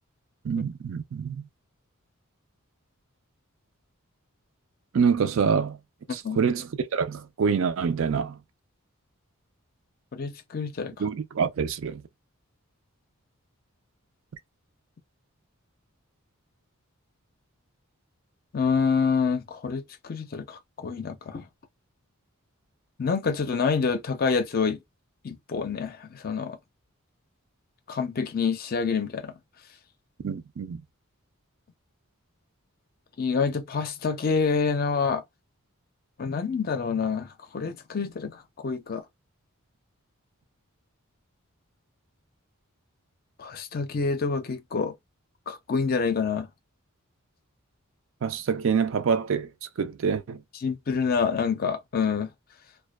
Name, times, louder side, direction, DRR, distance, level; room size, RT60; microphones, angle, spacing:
voice 1, 0.4-1.4 4.9-5.8 6.1-8.4 11.0-12.0 30.2-30.8 48.2-49.5 49.8-50.4, right 6 dB, 65° right, 0.4 m, -26 dB
voice 2, 6.1-6.4 10.1-10.9 18.5-21.5 23.0-24.8 25.2-26.6 27.9-29.3 33.2-35.2 36.2-39.0 43.4-44.9 45.5-46.5 50.6-52.3, left 5 dB, 45° left, 0.5 m, -27 dB
2.5 x 2.2 x 2.2 m
head